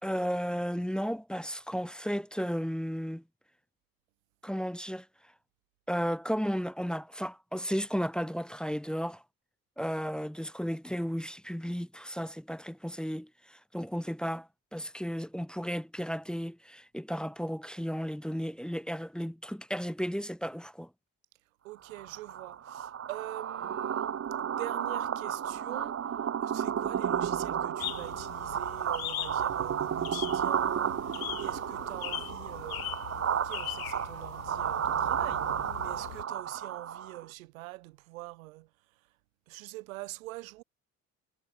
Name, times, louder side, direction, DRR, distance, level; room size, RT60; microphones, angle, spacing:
voice 1, 0.0-3.2 4.4-5.1 5.9-9.2 9.8-20.9, equal, ahead, 1.3 m, -34 dB
voice 2, 21.6-26.0 26.4-39.1 39.5-40.6, right 20 dB, 85° right, 1.3 m, -45 dB
sound 1, 21.9-37.2, right 8 dB, 35° right, 1.1 m, -33 dB
sound 2, 27.8-36.2, left 18 dB, 90° left, 0.6 m, -41 dB
hypercardioid pair, 55°, 40 cm